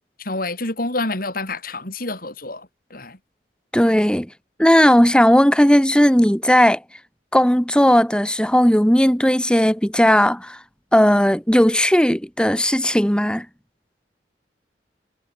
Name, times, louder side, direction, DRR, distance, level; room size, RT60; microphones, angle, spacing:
voice 1, 0.2-3.2, left 2 dB, 55° left, 6.9 m, -28 dB
voice 2, 3.7-4.3 4.6-6.8 7.3-10.6 10.9-13.5, equal, 5° left, 2.1 m, -16 dB
head